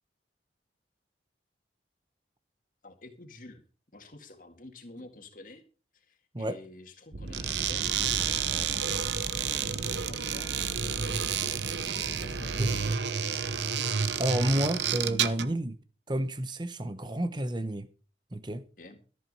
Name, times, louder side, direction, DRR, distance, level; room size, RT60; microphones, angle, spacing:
voice 1, 2.8-3.6 3.9-5.6 5.9-11.4 11.8-12.9 18.8-19.0, left 2 dB, 45° left, 2.1 m, -49 dB
sound 1, 7.1-12.9, right 2 dB, 50° right, 0.9 m, -39 dB
sound 2, 7.3-15.5, right 8 dB, 75° right, 0.9 m, -30 dB
voice 2, 14.2-15.8 16.1-17.9 18.3-18.7, right 1 dB, 25° right, 0.9 m, -30 dB
14.0 x 8.7 x 5.5 m
head